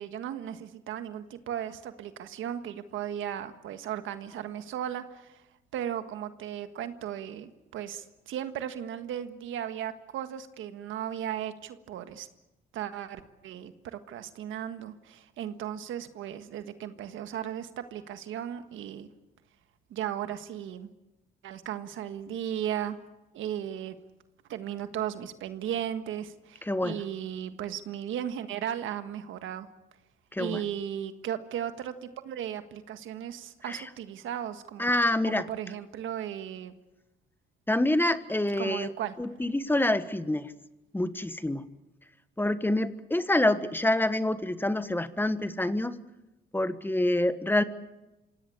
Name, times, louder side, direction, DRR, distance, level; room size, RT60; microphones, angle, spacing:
voice 1, 0.0-5.4 5.7-12.3 12.7-19.1 19.9-20.9 21.4-23.0 23.3-24.0 24.5-29.7 30.4-34.9 35.2-36.8 38.6-39.1, right 10 dB, 85° right, 9 dB, 1.6 m, -36 dB
voice 2, 26.7-27.0 30.3-30.6 33.7-33.8 34.8-35.4 37.7-38.9 39.2-40.5 40.9-41.6 42.4-46.0 46.5-47.6, left 1 dB, 10° left, 12 dB, 1.3 m, -26 dB
26.5 x 17.0 x 8.5 m, 0.99 s
cardioid pair, 90°, 20 cm